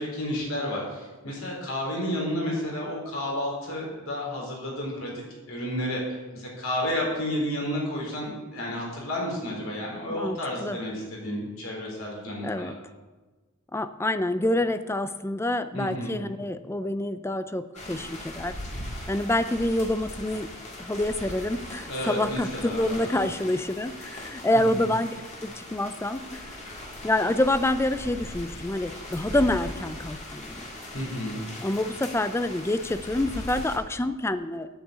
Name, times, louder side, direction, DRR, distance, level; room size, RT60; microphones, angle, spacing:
voice 1, 0.0-12.7 15.7-16.1 21.9-23.2 24.7-24.8 30.9-31.4, left 1 dB, 65° left, -2 dB, 4.1 m, -31 dB
voice 2, 10.1-10.8 12.4-12.8 13.7-18.6 19.1-20.5 20.8-25.1 25.4-26.5 27.0-30.6 31.6-34.7, left 1 dB, 10° left, 12 dB, 0.4 m, -27 dB
sound 1, 17.8-33.8, left 1 dB, 30° left, 2.0 m, -39 dB
9.1 x 8.0 x 8.2 m, 1.3 s
head